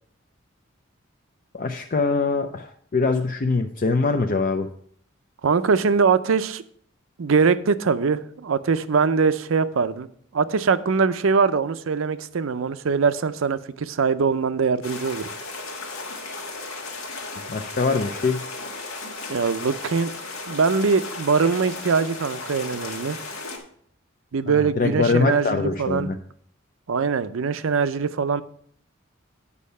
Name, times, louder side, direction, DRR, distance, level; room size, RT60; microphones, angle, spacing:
voice 1, 1.5-4.7 17.5-18.4 24.5-26.1, left 3 dB, 45° left, 0.5 m, -23 dB
voice 2, 5.4-6.6 7.2-15.3 19.3-20.1 20.5-23.2 24.3-26.1 26.9-28.4, right 5 dB, 75° right, 0.5 m, -22 dB
sound 1, 14.8-23.6, left 3 dB, 90° left, 1.6 m, -35 dB
8.4 x 5.5 x 5.5 m
head